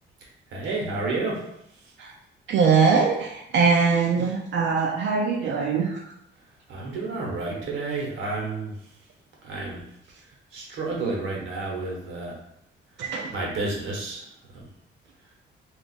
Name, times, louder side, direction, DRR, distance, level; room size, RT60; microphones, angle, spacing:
voice 1, 0.5-1.4 6.7-8.7 9.4-9.8 10.5-12.4 13.3-14.2 14.5-14.7, right 3 dB, 85° right, -2 dB, 1.0 m, -30 dB
voice 2, 2.5-6.1 13.0-13.3, right 5 dB, 65° right, 0 dB, 0.5 m, -22 dB
2.4 x 2.4 x 3.9 m, 0.78 s
cardioid pair, 90°, 20 cm